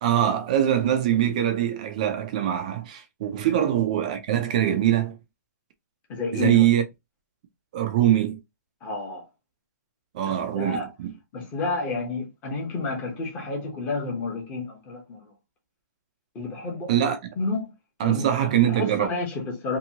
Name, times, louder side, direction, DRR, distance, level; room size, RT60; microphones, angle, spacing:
voice 1, 0.0-5.2 6.3-6.8 7.7-8.4 10.1-11.1 16.9-17.2 18.0-19.1, right 11 dB, 25° right, 0.3 m, -23 dB
voice 2, 6.1-6.6 8.8-9.3 10.2-10.9 11.3-15.3 16.3-17.0 17.4-17.7 18.0-18.2 18.7-19.8, left 3 dB, 15° left, 0.8 m, -30 dB
2.8 x 2.6 x 2.7 m
hypercardioid pair, 170°, 10 cm